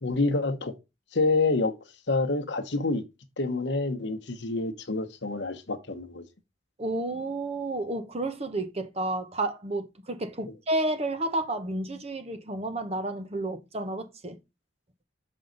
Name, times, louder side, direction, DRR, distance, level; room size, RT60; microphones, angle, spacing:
voice 1, 0.0-0.7 1.1-1.7 2.1-3.0 3.4-6.2 10.4-10.5, left 3 dB, 65° left, 1.0 m, -27 dB
voice 2, 6.8-14.4, right 2 dB, 35° right, 0.9 m, -31 dB
6.2 x 5.5 x 3.9 m
head